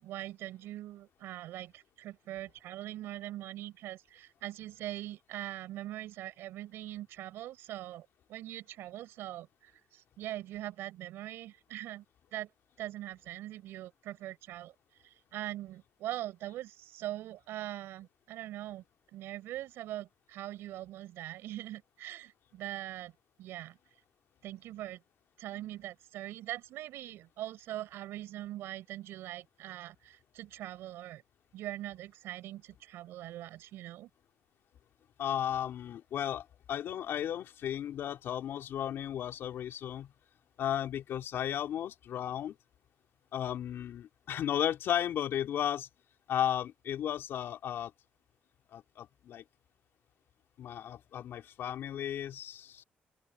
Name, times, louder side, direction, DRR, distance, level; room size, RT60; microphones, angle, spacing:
voice 1, 0.0-12.0 12.3-12.5 12.8-14.7 15.3-18.8 19.1-23.1 23.4-23.8 24.4-25.0 25.4-31.2 31.5-34.1, right 14 dB, 85° right, 4.7 m, -42 dB
voice 2, 35.2-40.1 40.6-42.5 43.3-45.9 46.3-47.9 48.7-49.4 50.6-52.8, left 10 dB, 75° left, 3.7 m, -34 dB
open air
cardioid pair, 75°, 4 cm